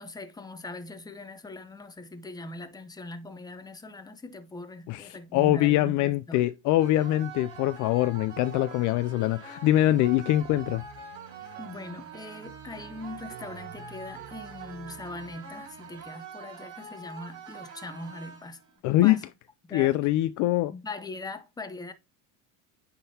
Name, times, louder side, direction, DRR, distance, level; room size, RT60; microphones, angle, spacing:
voice 1, 0.0-6.5 11.6-18.6 19.0-19.2 19.6-19.9 20.7-21.9, left 2 dB, 10° left, 0.9 m, -41 dB
voice 2, 4.9-10.8 18.8-19.2 19.7-20.7, left 15 dB, 50° left, 0.4 m, -24 dB
sound 1, 6.8-18.8, right 5 dB, 40° right, 4.5 m, -45 dB
sound 2, 10.3-16.1, right 10 dB, 70° right, 1.1 m, -50 dB
9.5 x 3.8 x 2.8 m
supercardioid pair, 105°, 38 cm